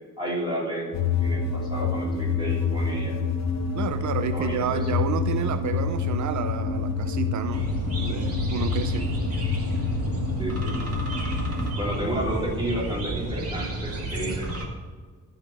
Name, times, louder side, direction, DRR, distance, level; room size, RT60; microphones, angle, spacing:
voice 1, 0.2-0.9 1.2-3.2 4.3-4.9 10.4-10.8 11.7-14.5, right 1 dB, 15° right, -4 dB, 3.1 m, -31 dB
sound 1, 0.9-11.7, left 5 dB, 60° left, 1.0 m, -27 dB
voice 2, 3.7-9.1, right 9 dB, 70° right, 10 dB, 0.6 m, -31 dB
sound 2, 7.5-14.7, right 2 dB, 50° right, 2.2 m, -31 dB
13.0 x 4.9 x 6.0 m, 1.5 s
wide cardioid pair, 140°, 30 cm